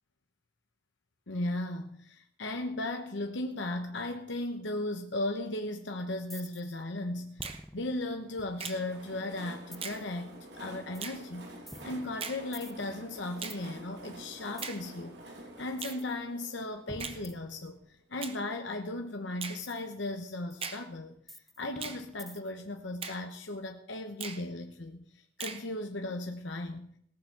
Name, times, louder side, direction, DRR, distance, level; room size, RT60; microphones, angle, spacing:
voice 1, 1.3-11.5 11.8-17.8 18.1-21.2 21.6-26.9, left 2 dB, 85° left, 4 dB, 1.0 m, -36 dB
sound 1, 6.3-6.8 7.4-9.0 9.7-10.1 10.9-11.2 11.7-13.6 14.6-14.8 15.8-16.1 16.9-18.0 19.6-19.8 20.5-20.6 21.3-22.7, equal, ahead, 0.7 m, -49 dB
Finger snapping, 7.4-7.6 8.6-8.8 9.8-10.0 11.0-11.2 12.2-12.4 13.4-13.6 14.6-14.8 15.8-16.0 17.0-17.2 18.2-18.4 19.4-19.6 20.6-20.8 21.8-22.0 23.0-23.2 24.2-24.4 25.4-25.6, right 6 dB, 30° right, 1.1 m, -39 dB
Train, 8.3-17.9, right 1 dB, 65° right, 2.3 m, -49 dB
18.5 x 7.0 x 6.0 m, 0.69 s
head